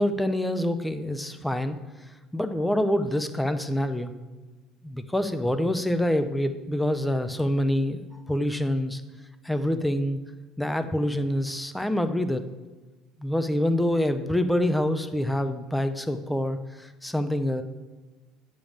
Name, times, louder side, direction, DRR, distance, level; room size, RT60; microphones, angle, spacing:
voice 1, 0.0-1.8 2.3-4.1 4.8-9.0 9.4-10.2 10.6-12.4 13.2-17.6, left 1 dB, 5° left, 10 dB, 0.4 m, -26 dB
9.2 x 5.1 x 7.2 m, 1.2 s
cardioid pair, 180°, 0 cm